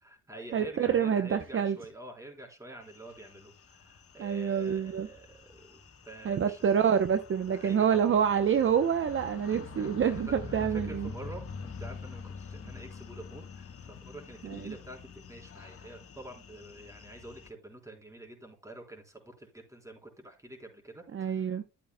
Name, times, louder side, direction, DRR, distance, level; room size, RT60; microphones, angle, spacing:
voice 1, 0.0-6.7 7.5-8.1 9.8-21.6, right 1 dB, 10° right, 3.9 m, -47 dB
voice 2, 0.5-1.8 4.2-5.1 6.2-11.1 14.4-14.7 21.1-21.6, right 8 dB, 45° right, 0.8 m, -27 dB
sound 1, 2.9-17.5, left 4 dB, 50° left, 1.6 m, -46 dB
12.5 x 8.5 x 2.3 m
cardioid pair, 90°, 30 cm